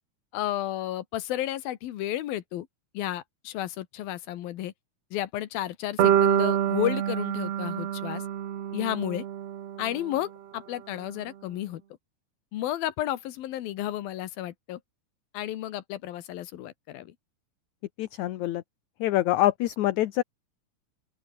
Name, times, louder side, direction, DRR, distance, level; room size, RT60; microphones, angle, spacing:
voice 1, 0.3-2.7 2.9-4.7 5.1-8.2 8.7-9.2 9.8-11.8 12.5-14.8 15.3-17.1, left 13 dB, 90° left, 3.2 m, -32 dB
sound 1, 6.0-10.1, right 10 dB, 55° right, 2.2 m, -26 dB
voice 2, 18.0-18.6 19.0-20.2, left 15 dB, 70° left, 2.0 m, -25 dB
open air
omnidirectional pair, 4.1 m